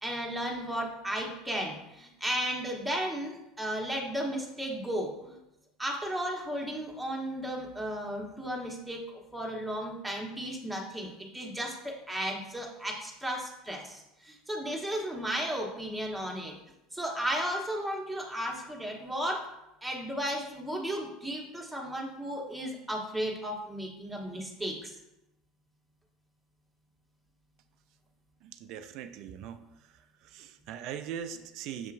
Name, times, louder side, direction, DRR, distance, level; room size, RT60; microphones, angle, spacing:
voice 1, 0.0-5.4 5.8-16.5 16.9-19.5 19.8-24.9, equal, 5° right, 0 dB, 1.1 m, -34 dB
voice 2, 28.4-29.6 30.2-31.9, right 8 dB, 60° right, 10 dB, 0.3 m, -40 dB
7.0 x 2.7 x 2.5 m, 0.90 s
hypercardioid pair, 85°, 0 cm